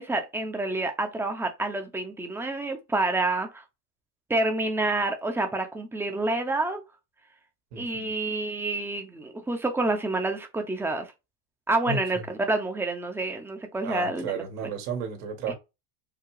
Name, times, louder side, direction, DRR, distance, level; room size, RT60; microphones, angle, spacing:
voice 1, 0.0-3.6 4.3-6.8 7.8-11.1 11.7-14.3 15.5-15.6, right 2 dB, 5° right, 0.8 m, -28 dB
voice 2, 7.7-8.1 11.9-12.2 13.8-15.5, right 5 dB, 80° right, 1.9 m, -33 dB
4.8 x 2.1 x 4.8 m
cardioid pair, 150°, 39 cm